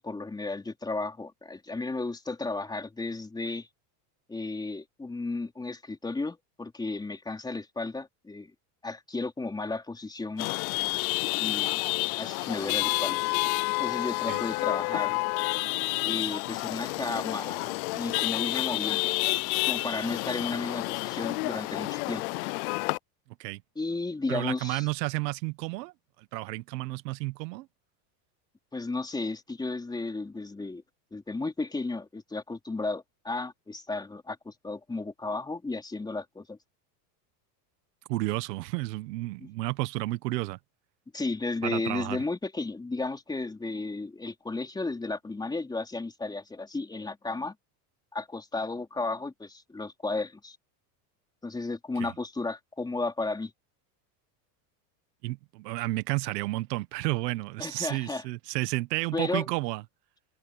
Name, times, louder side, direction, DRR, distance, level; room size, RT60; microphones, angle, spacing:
voice 1, 0.0-3.7 4.3-8.5 8.8-10.5 11.4-11.8 12.2-13.2 13.8-15.2 16.0-19.1 19.7-22.2 23.8-24.9 28.7-30.8 31.1-36.6 39.4-39.5 41.1-47.5 48.1-50.6 51.4-53.5 57.6-58.2 59.1-59.5, left 3 dB, 10° left, 4.2 m, -34 dB
Chatter / Vehicle horn car horn honking / Traffic noise roadway noise, 10.4-23.0, left 26 dB, 65° left, 0.6 m, -29 dB
voice 2, 24.3-25.9 26.3-27.7 38.1-40.6 41.6-42.2 52.0-52.1 55.2-59.8, right 20 dB, 85° right, 1.3 m, -31 dB
supercardioid pair, 160°, 48 cm